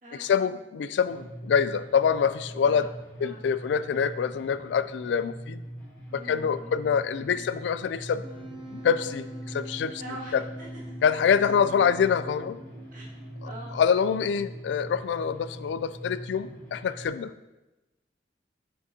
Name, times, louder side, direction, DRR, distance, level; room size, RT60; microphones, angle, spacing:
voice 1, 0.2-2.9 3.2-5.6 6.1-8.2 8.7-10.0 10.3-10.4 11.0-12.6 13.4-17.3, left 7 dB, 90° left, 14 dB, 0.3 m, -25 dB
sound 1, 1.1-17.1, equal, 5° left, 2.3 m, -43 dB
voice 2, 6.1-7.5 10.0-10.8 12.9-13.1 13.4-13.8, right 1 dB, 50° right, -5 dB, 1.9 m, -44 dB
sound 2, 7.3-16.9, right 4 dB, 75° right, 2.1 m, -55 dB
Wind instrument woodwind instrument, 8.2-13.9, right 1 dB, 30° right, 0.7 m, -45 dB
7.4 x 6.2 x 2.8 m, 1.0 s
head